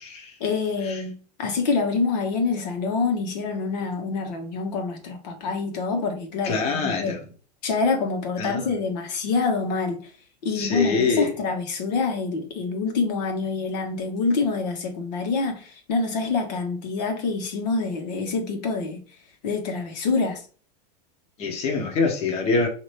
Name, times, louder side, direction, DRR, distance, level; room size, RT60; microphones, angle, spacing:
voice 1, 0.4-7.1 7.6-10.0 10.4-19.0 19.4-20.4, left 4 dB, 85° left, 1.3 m, -26 dB
voice 2, 6.4-7.2 8.4-8.7 10.5-11.3 21.4-22.7, left 4 dB, 30° left, 1.0 m, -25 dB
4.2 x 2.8 x 3.3 m
supercardioid pair, 150°, 20 cm